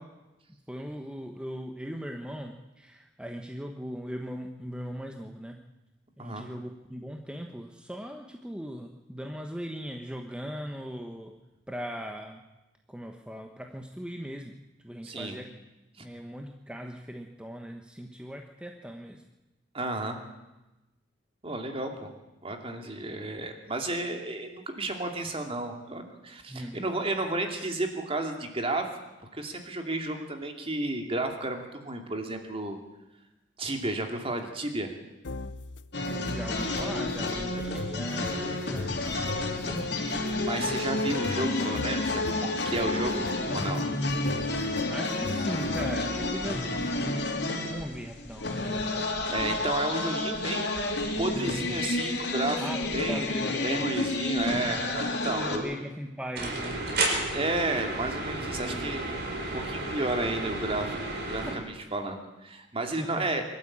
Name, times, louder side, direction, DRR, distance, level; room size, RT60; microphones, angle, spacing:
voice 1, 0.7-5.6 6.2-11.3 11.7-12.4 12.9-14.5 14.8-15.5 16.0-19.2 26.5-26.8 36.3-40.0 44.9-47.2 47.7-48.5 51.3-51.6 52.6-53.9 55.2-56.8 58.3-59.0 61.4-61.6 63.0-63.3, equal, 5° right, 3 dB, 1.2 m, -39 dB
voice 2, 15.0-15.3 19.7-20.2 21.4-22.1 22.4-28.9 29.3-32.8 33.6-34.9 40.4-43.2 43.5-43.8 49.3-50.8 51.2-52.6 52.9-53.3 53.6-55.7 57.3-59.0 59.5-60.9 61.3-63.4, right 2 dB, 30° right, 4 dB, 2.6 m, -32 dB
sound 1, 35.2-46.4, left 3 dB, 85° left, 0.8 m, -39 dB
sound 2, 35.9-55.6, left 2 dB, 65° left, 3.4 m, -30 dB
sound 3, 56.3-61.5, right 2 dB, 60° right, 4.6 m, -32 dB
23.5 x 12.5 x 8.7 m, 1.0 s
head